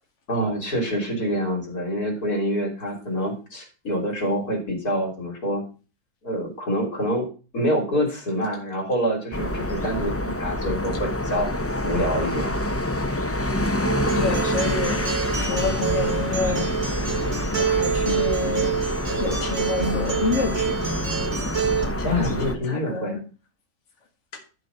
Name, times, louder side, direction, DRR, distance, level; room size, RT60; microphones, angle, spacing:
voice 1, 0.3-5.7 6.2-7.3 7.5-11.5 11.8-12.5 22.0-23.2, equal, 90° left, 1 dB, 3.8 m, -26 dB
sound 1, 9.3-22.5, left 1 dB, 15° left, 0.6 m, -27 dB
Acoustic guitar, 13.8-21.8, right 7 dB, 55° right, 2.2 m, -27 dB
voice 2, 14.2-15.0 15.4-16.7 17.6-18.7 19.2-20.8 21.8-23.2, left 4 dB, 50° left, 1 dB, 2.0 m, -28 dB
12.5 x 4.2 x 6.4 m, 0.34 s
omnidirectional pair, 1.6 m